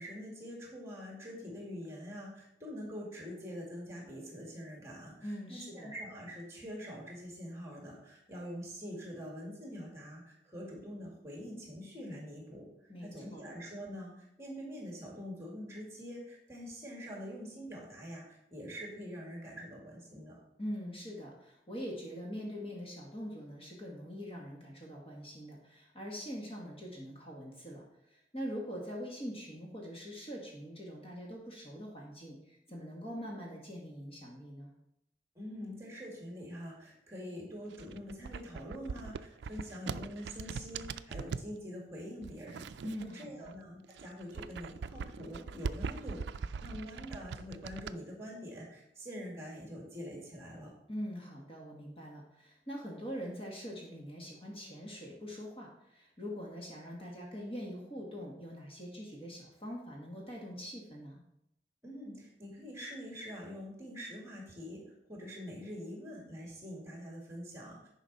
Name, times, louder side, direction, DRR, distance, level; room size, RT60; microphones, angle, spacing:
voice 1, 0.0-12.7 13.0-20.4 35.4-42.7 43.0-46.2 46.6-50.7 61.8-67.9, equal, 15° right, -2 dB, 2.2 m, -45 dB
voice 2, 5.2-5.9 12.9-13.4 20.6-34.7 42.8-43.5 50.9-61.2, equal, 30° left, -2 dB, 1.6 m, -43 dB
sound 1, 37.7-41.5 42.2-43.5 43.8-47.9, right 5 dB, 80° right, 0.3 m, -41 dB
10.0 x 5.1 x 4.1 m, 0.80 s
head